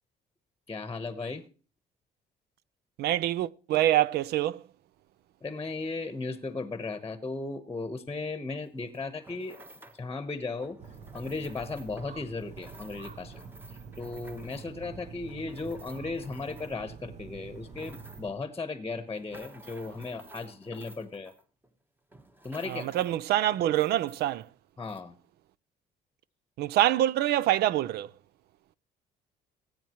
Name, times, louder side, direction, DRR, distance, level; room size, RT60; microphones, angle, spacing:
voice 1, 0.7-1.4 5.4-9.6 10.0-10.8 11.1-13.4 14.0-21.3 22.4-23.0 24.8-25.2, left 3 dB, 15° left, 1.1 m, -36 dB
voice 2, 3.0-4.6 22.7-24.5 26.6-28.1, right 13 dB, 70° right, 0.6 m, -25 dB
sound 1, 8.6-10.1 10.6-17.0 17.4-18.4 18.9-21.8 22.1-23.2 23.5-24.5 24.8-25.0, right 1 dB, 10° right, 1.2 m, -53 dB
sound 2, 10.8-18.3, right 6 dB, 45° right, 1.0 m, -46 dB
20.0 x 8.8 x 3.0 m
cardioid pair, 110°, 17 cm